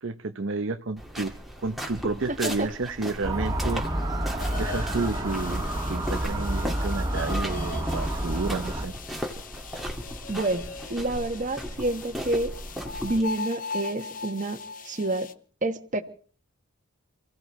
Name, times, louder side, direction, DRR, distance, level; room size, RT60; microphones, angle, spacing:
voice 1, 0.0-1.3 1.6-3.9 4.6-9.0, right 3 dB, 65° right, 0.7 m, -31 dB
sound 1, 1.0-13.2, equal, ahead, 1.9 m, -37 dB
Motor vehicle (road) / Siren, 3.2-8.9, right 1 dB, 15° right, 1.9 m, -29 dB
sound 2, 4.4-15.3, left 4 dB, 40° left, 0.9 m, -40 dB
voice 2, 10.3-10.6 10.9-12.5 13.0-15.3 15.6-16.0, right 2 dB, 35° right, 1.3 m, -28 dB
28.5 x 16.0 x 3.1 m
head